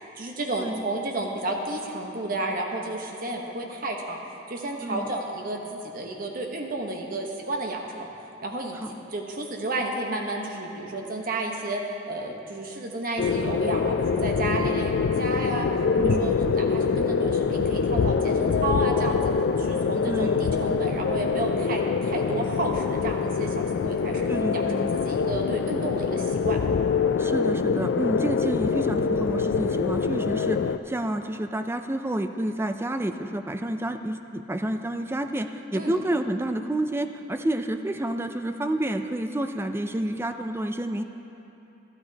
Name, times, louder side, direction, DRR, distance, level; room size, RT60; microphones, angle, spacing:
voice 1, 0.2-4.2 4.5-8.1 8.4-8.8 9.1-11.8 12.1-15.7 16.0-19.2 19.6-26.6 35.7-36.0, right 2 dB, 50° right, 1 dB, 1.0 m, -31 dB
voice 2, 4.8-5.1 8.7-8.9 16.0-16.3 20.1-20.4 24.3-24.9 27.2-41.0, right 1 dB, 15° right, 7 dB, 0.4 m, -29 dB
sound 1, 13.2-30.8, left 5 dB, 70° left, 0.3 m, -25 dB
13.0 x 12.5 x 2.8 m, 2.9 s
head